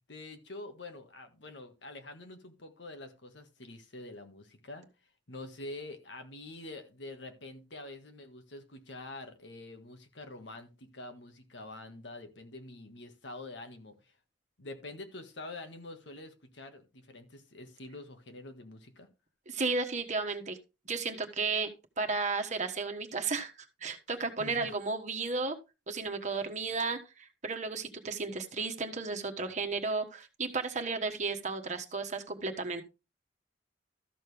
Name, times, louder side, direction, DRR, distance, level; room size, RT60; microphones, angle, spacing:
voice 1, 0.1-4.9 5.3-14.2 14.6-19.1 24.4-24.7, left 2 dB, 80° left, 1.7 m, -46 dB
voice 2, 19.5-20.6 20.8-21.7 22.0-25.6 25.9-32.8, right 4 dB, 40° right, 1.3 m, -33 dB
13.5 x 6.5 x 3.4 m
head